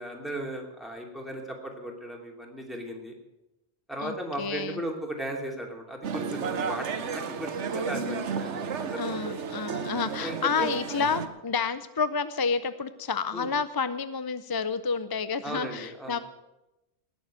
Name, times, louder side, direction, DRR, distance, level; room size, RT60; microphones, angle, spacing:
voice 1, 0.0-3.1 3.9-9.4 10.2-10.7 13.3-13.5 15.4-16.2, right 1 dB, ahead, 1 dB, 2.8 m, -36 dB
voice 2, 4.0-4.8 9.0-16.2, left 5 dB, 30° left, 13 dB, 0.4 m, -30 dB
sound 1, 6.0-11.3, right 5 dB, 90° right, 1.3 m, -32 dB
19.0 x 7.1 x 9.1 m, 0.93 s
omnidirectional pair, 1.1 m